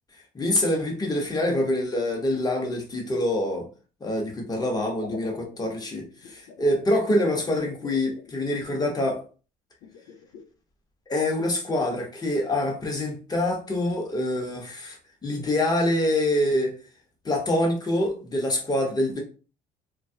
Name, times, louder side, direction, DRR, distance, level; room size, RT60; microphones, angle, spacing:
voice 1, 0.3-3.7 4.0-9.2 11.1-15.0 15.2-16.8 17.2-19.2, left 1 dB, 25° left, 0 dB, 0.9 m, -25 dB
sound 1, 4.7-8.9 9.8-10.4, left 5 dB, 90° left, 0.5 m, -45 dB
3.0 x 2.3 x 2.7 m, 0.37 s
cardioid pair, 110°, 17 cm